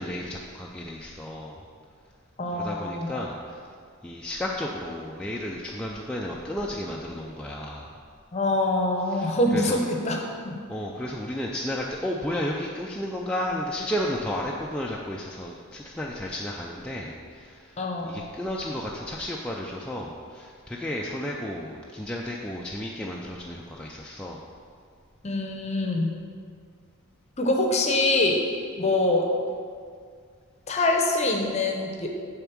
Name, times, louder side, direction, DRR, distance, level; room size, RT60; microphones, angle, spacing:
voice 1, 0.0-1.6 2.5-3.7 4.0-7.9 9.1-9.8 10.7-24.4, left 1 dB, 5° left, -3 dB, 0.3 m, -33 dB
voice 2, 2.4-3.1 8.3-10.6 17.8-18.2 25.2-26.2 27.4-28.4 28.8-29.3 30.7-32.1, left 2 dB, 30° left, 2 dB, 0.7 m, -24 dB
6.8 x 3.6 x 6.1 m, 2.1 s
head